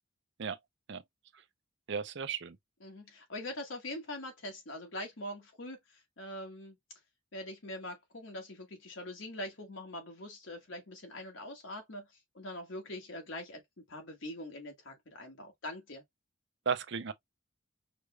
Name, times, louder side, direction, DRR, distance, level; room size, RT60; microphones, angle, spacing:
voice 1, 1.9-2.6 16.7-17.1, right 6 dB, 60° right, 0.6 m, -34 dB
voice 2, 2.8-6.7 7.3-12.1 12.3-16.0, left 1 dB, 70° left, 1.3 m, -43 dB
5.0 x 3.2 x 2.2 m
head